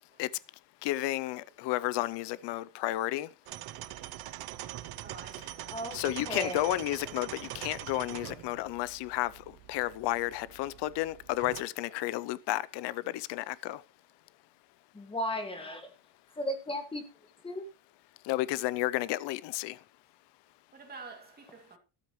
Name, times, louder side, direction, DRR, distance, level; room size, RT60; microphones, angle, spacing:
voice 1, 0.8-3.3 5.9-13.8 18.2-19.8, left 16 dB, 60° left, 0.6 m, -32 dB
sound 1, 3.5-11.6, right 14 dB, 50° right, 0.7 m, -43 dB
voice 2, 5.0-5.8 8.5-8.6 9.8-9.9 10.7-10.8 13.1-13.2 15.3-15.6 20.7-21.8, right 4 dB, 20° right, 2.6 m, -50 dB
voice 3, 5.7-6.7 14.9-15.9 16.4-17.0 17.4-17.6, left 1 dB, 10° left, 1.8 m, -35 dB
13.0 x 12.5 x 3.1 m
cardioid pair, 170°, 49 cm